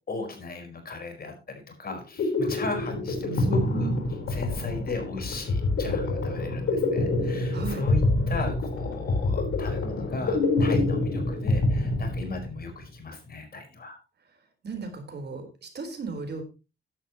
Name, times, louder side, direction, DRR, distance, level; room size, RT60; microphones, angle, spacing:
voice 1, 0.1-3.9 4.3-8.0 8.3-14.0, left 3 dB, 45° left, 5 dB, 4.7 m, -36 dB
sound 1, 1.9-12.7, left 2 dB, 75° left, 4.2 m, -26 dB
voice 2, 3.2-4.0 7.5-7.8 14.6-16.4, right 4 dB, 55° right, 5 dB, 4.1 m, -35 dB
14.5 x 11.0 x 3.0 m, 0.29 s
wide cardioid pair, 130°, 21 cm